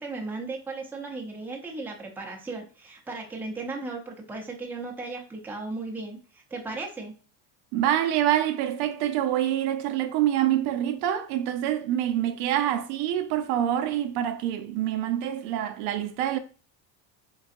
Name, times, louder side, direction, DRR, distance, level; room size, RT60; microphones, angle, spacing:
voice 1, 0.0-7.1, right 3 dB, 5° right, 0.7 m, -36 dB
voice 2, 7.7-16.4, right 11 dB, 65° right, 0.6 m, -26 dB
3.9 x 3.8 x 2.5 m
cardioid pair, 155°, 43 cm